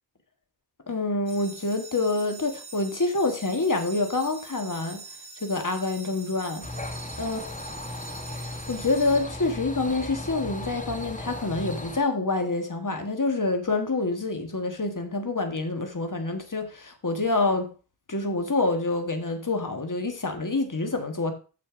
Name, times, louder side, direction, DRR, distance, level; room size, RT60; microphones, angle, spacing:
voice 1, 0.9-5.0 5.4-6.6 7.2-7.4 8.4-17.7 18.1-21.3, left 3 dB, 50° left, 1.5 m, -27 dB
sound 1, 1.3-9.9, right 3 dB, 65° right, 2.1 m, -45 dB
sound 2, 6.6-12.0, left 1 dB, 20° left, 1.2 m, -36 dB
6.9 x 6.1 x 4.9 m
wide cardioid pair, 50°, 40 cm